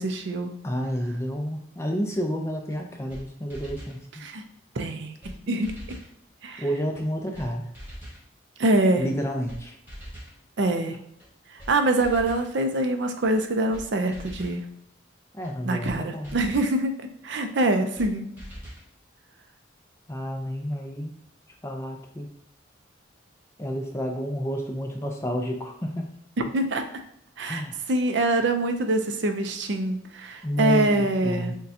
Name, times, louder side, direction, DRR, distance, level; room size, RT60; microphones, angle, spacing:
voice 1, 0.0-0.5 4.2-4.4 4.8-5.2 5.5-5.8 6.4-6.6 8.6-9.1 10.6-11.0 11.7-14.6 15.6-16.9 17.2-18.4 26.4-26.9 27.4-27.6 27.9-31.5, right 2 dB, 65° right, 6 dB, 0.5 m, -24 dB
voice 2, 0.6-4.0 6.6-7.7 9.0-9.8 15.3-16.4 20.1-21.1 21.6-22.3 23.6-26.1 27.4-27.8 30.4-31.5, equal, 15° left, 2 dB, 0.4 m, -30 dB
sound 1, 2.7-2.8 3.1-3.2 3.5-4.0 4.8-4.9 5.2-5.4 5.6-6.1 6.9-7.0 7.3-7.5 7.7-8.2 9.1-9.2 9.5-9.6 9.9-10.4 11.2-11.3 11.6-11.7 12.0-12.5 13.3-13.4 13.7-13.8 14.1-14.6 15.4-15.5 15.8-16.0 16.2-16.7 17.6-17.7 18.0-18.1 18.4-18.9, equal, 10° right, 1.2 m, -41 dB
6.4 x 2.3 x 2.7 m, 0.75 s
head